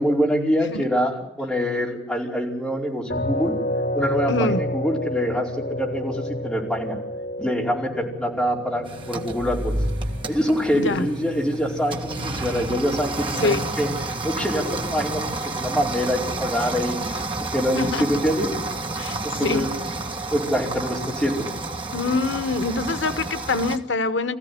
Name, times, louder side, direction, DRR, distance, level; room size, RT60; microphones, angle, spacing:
voice 1, 0.0-3.6 3.9-7.0 7.4-9.7 10.3-13.9 14.2-17.0 17.5-18.5 19.2-19.7 20.3-21.5, equal, 5° left, -4 dB, 5.0 m, -25 dB
sound 1, 3.1-16.1, left 1 dB, 70° left, 3.5 m, -32 dB
voice 2, 4.3-4.7 10.8-11.1 13.4-13.7 17.4-18.2 18.9-19.7 21.9-24.4, left 3 dB, 85° left, 11 dB, 1.0 m, -25 dB
sound 2, 8.7-11.0, equal, 85° right, 3.2 m, -30 dB
sound 3, 8.8-23.8, right 2 dB, 25° right, 1.7 m, -31 dB
25.0 x 15.0 x 9.7 m, 0.97 s
head